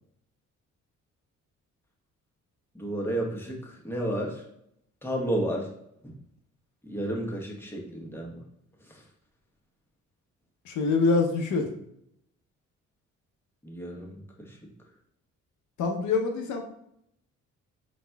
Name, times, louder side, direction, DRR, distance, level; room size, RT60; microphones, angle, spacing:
voice 1, 2.7-4.4 5.0-5.7 6.0-6.1 6.8-8.4 8.9-9.0 13.6-14.6, right 1 dB, 10° left, -1 dB, 1.0 m, -32 dB
voice 2, 10.6-11.7 15.8-16.6, left 4 dB, 75° left, 4 dB, 0.8 m, -25 dB
5.0 x 4.1 x 2.3 m, 0.75 s
cardioid pair, 90°, 30 cm